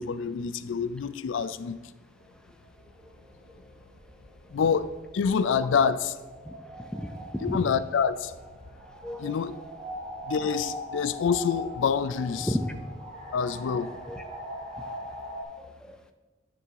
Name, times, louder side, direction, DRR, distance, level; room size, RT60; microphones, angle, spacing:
voice 1, 0.0-1.8 4.5-6.2 7.4-8.3 9.2-9.5 10.2-12.6 13.3-13.9, left 6 dB, 80° left, 14 dB, 0.4 m, -27 dB
sound 1, 2.2-15.4, equal, 45° right, 1.6 m, -42 dB
voice 2, 6.5-7.6 9.0-9.3 12.4-12.7 14.1-14.2 15.6-16.0, equal, 5° left, 6 dB, 0.4 m, -33 dB
9.6 x 3.6 x 4.6 m, 1.2 s
head